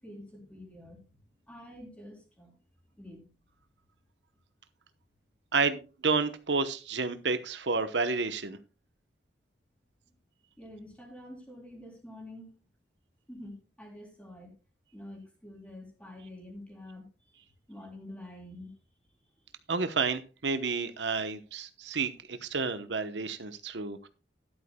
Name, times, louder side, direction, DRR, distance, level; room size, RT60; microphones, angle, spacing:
voice 1, 0.0-2.6 3.0-3.3 10.6-12.5 13.3-14.5 14.9-17.4 17.7-18.7, left 1 dB, 5° left, 1 dB, 3.5 m, -47 dB
voice 2, 5.5-8.6 19.7-24.1, right 4 dB, 80° right, 11 dB, 1.0 m, -30 dB
13.5 x 11.5 x 2.3 m, 0.31 s
head